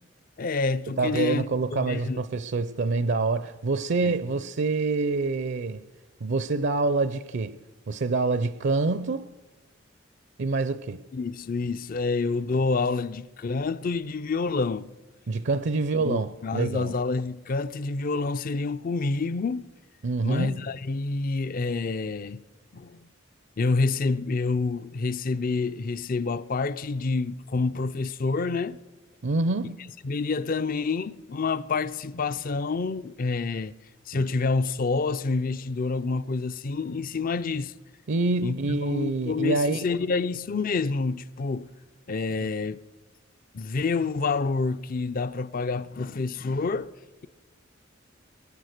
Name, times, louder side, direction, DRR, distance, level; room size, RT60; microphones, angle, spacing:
voice 1, 0.4-2.2 4.0-4.2 11.1-14.9 16.0-19.7 20.2-22.4 22.7-23.1 23.6-28.8 30.0-33.7 34.1-37.7 38.4-41.7 42.1-42.8 43.5-46.9, left 4 dB, 45° left, 0.5 m, -28 dB
voice 2, 1.0-5.8 6.2-7.6 7.9-9.3 10.4-11.0 15.3-16.9 20.0-20.7 29.2-29.9 34.1-34.2 38.1-39.8 42.4-42.5, right 3 dB, 60° right, 0.5 m, -26 dB
20.5 x 9.7 x 6.5 m
head